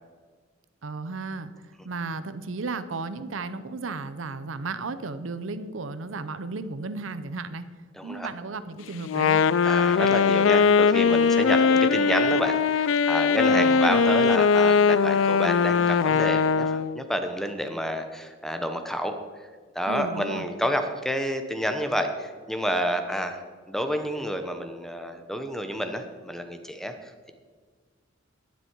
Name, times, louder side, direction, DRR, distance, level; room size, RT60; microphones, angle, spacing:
voice 1, 0.8-7.7 8.0-9.4 13.5-13.8 19.9-20.4, right 3 dB, 80° right, 13 dB, 0.7 m, -34 dB
voice 2, 8.0-8.3 9.6-19.1 19.7-23.4 23.7-27.3, equal, ahead, 7 dB, 0.9 m, -29 dB
Wind instrument woodwind instrument, 9.0-17.0, left 5 dB, 75° left, 0.3 m, -20 dB
11.5 x 9.5 x 4.6 m, 1.5 s
head